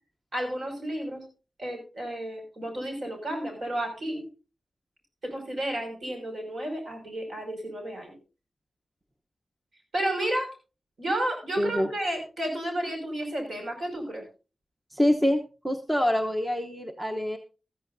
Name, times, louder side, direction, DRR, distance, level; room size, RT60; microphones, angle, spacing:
voice 1, 0.3-1.2 1.6-4.2 5.2-8.2 9.9-10.5 11.0-14.2, right 1 dB, 60° right, 2 dB, 5.8 m, -32 dB
voice 2, 11.6-11.9 14.9-17.4, left 1 dB, 10° right, 4 dB, 1.0 m, -25 dB
14.5 x 14.0 x 2.7 m, 0.32 s
wide cardioid pair, 135°, 0 cm